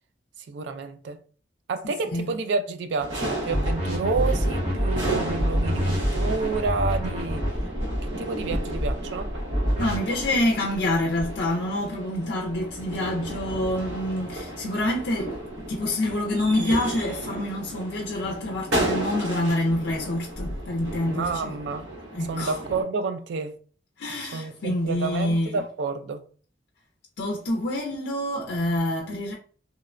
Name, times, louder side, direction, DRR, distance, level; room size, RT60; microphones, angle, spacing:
voice 1, 0.5-1.2 1.7-7.5 8.0-9.3 21.1-21.9 22.3-23.6 24.2-26.3, right 4 dB, 70° right, 0.3 m, -30 dB
voice 2, 1.8-2.3 9.8-21.5 22.1-22.6 24.0-25.6 27.2-29.3, left 1 dB, 65° left, 0.4 m, -27 dB
sound 1, 3.0-22.8, right 1 dB, 85° right, 0.9 m, -33 dB
sound 2, 3.5-7.5 9.5-10.0, equal, 35° right, 0.9 m, -26 dB
2.8 x 2.1 x 2.4 m
head